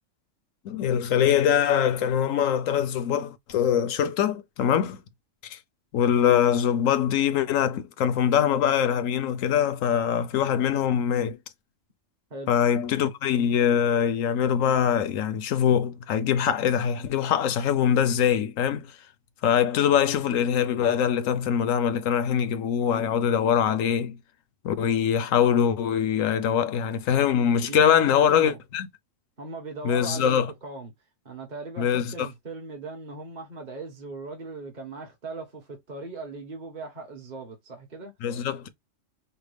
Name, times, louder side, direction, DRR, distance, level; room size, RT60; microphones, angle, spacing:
voice 1, 0.6-5.0 5.4-5.6 5.9-11.4 12.5-18.9 19.4-24.2 24.6-28.9 29.8-30.5 31.8-32.3 38.2-38.7, left 8 dB, 85° left, 1.1 m, -23 dB
voice 2, 27.7-28.6 29.4-30.9 31.2-38.1, right 3 dB, 35° right, 1.2 m, -39 dB
5.7 x 2.1 x 3.3 m
omnidirectional pair, 1.3 m